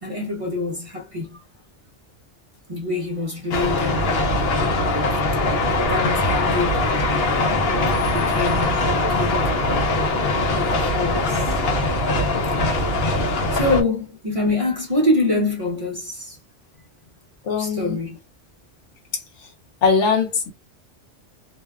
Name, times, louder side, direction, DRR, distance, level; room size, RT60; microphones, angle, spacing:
voice 1, 0.0-1.4 2.7-4.2 5.9-7.0 8.1-9.6 10.5-11.5 13.5-16.4 17.6-18.2, left 2 dB, 35° right, 0.6 m, -25 dB
sound 1, 3.5-13.8, left 2 dB, 60° left, 0.9 m, -21 dB
voice 2, 17.4-18.0 19.8-20.5, left 5 dB, 85° left, 1.1 m, -21 dB
2.7 x 2.2 x 2.2 m
omnidirectional pair, 1.2 m